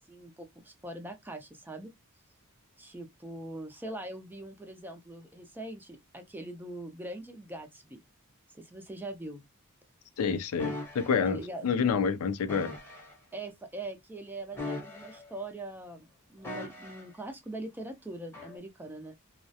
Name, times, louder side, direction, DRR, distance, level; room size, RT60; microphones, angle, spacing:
voice 1, 0.1-1.9 2.8-8.0 8.5-9.4 11.2-11.7 13.3-19.2, right 1 dB, 10° right, 0.4 m, -42 dB
voice 2, 10.2-12.7, left 6 dB, 70° left, 0.4 m, -28 dB
sound 1, 10.6-11.2 12.5-13.1 14.5-15.4 16.4-17.2 18.3-18.6, left 2 dB, 10° left, 0.8 m, -40 dB
2.3 x 2.0 x 2.7 m
head